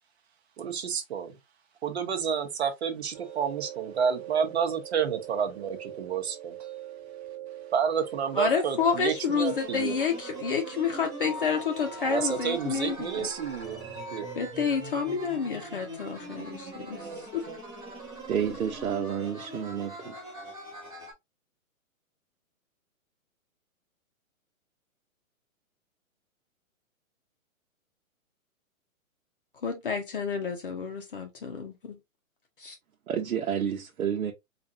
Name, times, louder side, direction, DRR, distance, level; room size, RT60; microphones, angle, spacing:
voice 1, 0.6-1.4 1.8-6.6 7.7-10.0 12.0-14.3 16.9-17.6, right 7 dB, 50° right, 0.9 m, -30 dB
sound 1, 3.1-14.4, right 7 dB, 30° right, 1.1 m, -43 dB
voice 2, 8.4-13.3 14.4-17.1 17.3-17.4 29.6-32.0 32.6-32.8, left 6 dB, 40° left, 0.7 m, -29 dB
sound 2, 9.3-21.1, right 1 dB, 10° right, 0.8 m, -42 dB
voice 3, 18.3-20.1 33.1-34.3, right 8 dB, 85° right, 0.9 m, -30 dB
4.2 x 2.5 x 2.6 m
hypercardioid pair, 170°, 42 cm